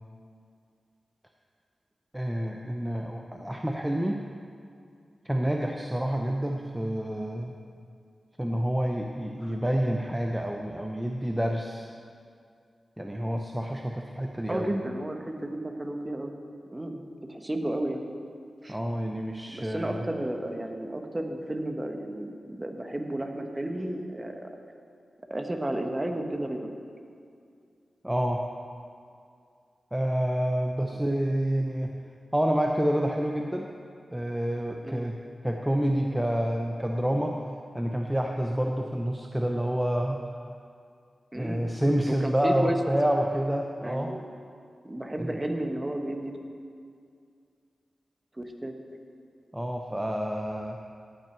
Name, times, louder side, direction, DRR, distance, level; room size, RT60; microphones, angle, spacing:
voice 1, 2.1-4.2 5.2-7.5 8.4-11.9 13.0-14.7 18.7-20.0 28.0-28.4 29.9-31.9 32.3-33.7 34.1-35.2 35.4-37.4 37.7-40.2 41.3-44.2 45.2-45.3 49.5-50.8, equal, 10° right, 2 dB, 0.7 m, -28 dB
voice 2, 14.5-16.3 16.7-17.0 17.3-18.0 18.6-18.8 19.5-24.5 25.3-26.7 34.8-35.1 41.3-41.7 42.1-42.7 43.8-44.3 44.8-46.3 48.4-48.7, right 1 dB, 25° right, 4 dB, 1.3 m, -32 dB
17.0 x 6.0 x 4.6 m, 2.3 s
cardioid pair, 45°, 0 cm